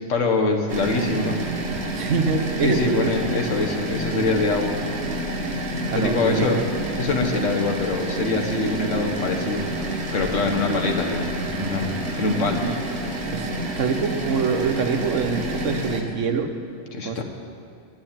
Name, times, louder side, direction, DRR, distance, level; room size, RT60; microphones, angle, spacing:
voice 1, 0.0-1.4 2.6-4.8 5.9-6.6 7.0-9.7 10.1-12.6 16.9-17.2, left 3 dB, 90° left, 2 dB, 1.5 m, -24 dB
sound 1, 0.7-16.0, right 1 dB, 60° right, 1.5 m, -29 dB
voice 2, 1.9-3.2 5.9-6.7 10.7-10.8 12.6-12.8 13.3-13.5 13.8-16.5 17.0-17.2, right 5 dB, 90° right, 6 dB, 1.2 m, -25 dB
9.7 x 8.6 x 8.8 m, 2.4 s
omnidirectional pair, 1.2 m